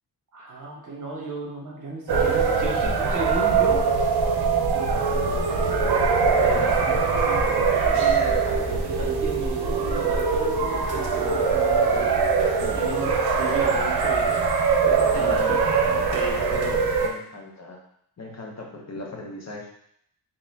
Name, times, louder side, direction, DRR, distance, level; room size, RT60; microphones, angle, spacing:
voice 1, 0.3-3.8 4.7-5.7 6.4-12.2 12.7-14.4 14.8-16.4, right 2 dB, 45° right, -2 dB, 1.1 m, -34 dB
sound 1, 2.1-17.1, right 5 dB, 60° right, 0.7 m, -22 dB
voice 2, 12.6-12.9 15.1-15.6 16.5-17.8 18.2-19.7, left 2 dB, 40° left, -1 dB, 0.8 m, -37 dB
4.1 x 3.4 x 2.7 m, 0.71 s
wide cardioid pair, 110°, 42 cm